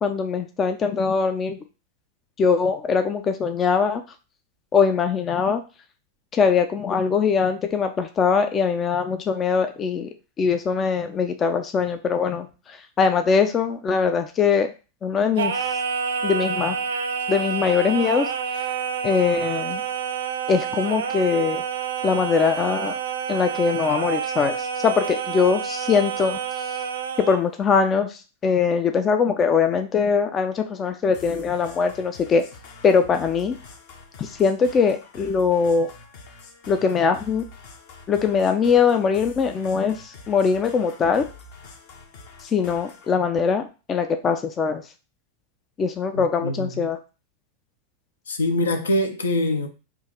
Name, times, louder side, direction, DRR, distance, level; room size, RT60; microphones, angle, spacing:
voice 1, 0.0-1.6 2.4-4.0 4.7-5.6 6.3-10.1 10.4-14.7 15.0-15.7 16.2-16.8 17.3-18.3 18.6-18.7 19.0-19.8 20.5-21.6 22.0-23.0 23.3-26.4 26.7-26.8 27.2-32.4 32.8-33.6 34.2-35.9 36.7-37.4 38.1-41.2 42.4-44.8 45.8-47.0, left 5 dB, 25° left, 0.4 m, -22 dB
Singing, 15.4-27.4, right 7 dB, 65° right, 0.4 m, -28 dB
sound 1, 31.1-43.1, left 3 dB, 50° left, 1.0 m, -46 dB
voice 2, 46.1-46.9 48.3-49.7, left 1 dB, 70° left, 0.7 m, -24 dB
3.7 x 2.5 x 4.3 m
figure-of-eight pair, 90°, 0 cm